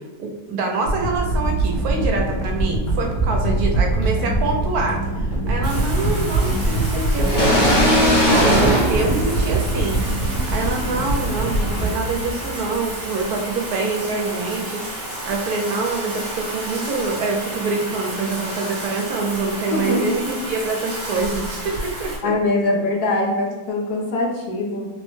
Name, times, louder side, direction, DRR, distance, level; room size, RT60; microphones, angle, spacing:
voice 1, 0.2-7.8 8.2-22.3, right 3 dB, 75° right, 1 dB, 1.0 m, -25 dB
sound 1, 0.9-13.1 13.6-13.7, right 2 dB, 90° left, 1.5 m, -23 dB
Bathtub (filling or washing), 5.6-22.2, right 1 dB, 40° right, 1.0 m, -31 dB
sound 2, 7.2-10.1, equal, 45° left, 0.6 m, -18 dB
voice 2, 19.7-20.1 22.2-24.9, left 2 dB, 75° left, 0 dB, 1.2 m, -22 dB
3.7 x 2.1 x 3.0 m, 1.3 s
omnidirectional pair, 1.7 m